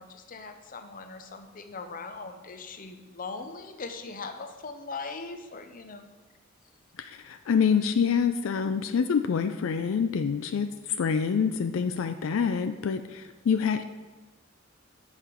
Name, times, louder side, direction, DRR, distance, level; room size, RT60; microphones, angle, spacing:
voice 1, 0.0-6.1, left 4 dB, 45° left, 7 dB, 0.7 m, -40 dB
voice 2, 7.0-13.8, left 6 dB, 80° left, 9 dB, 0.4 m, -26 dB
8.3 x 5.7 x 4.5 m, 1.2 s
head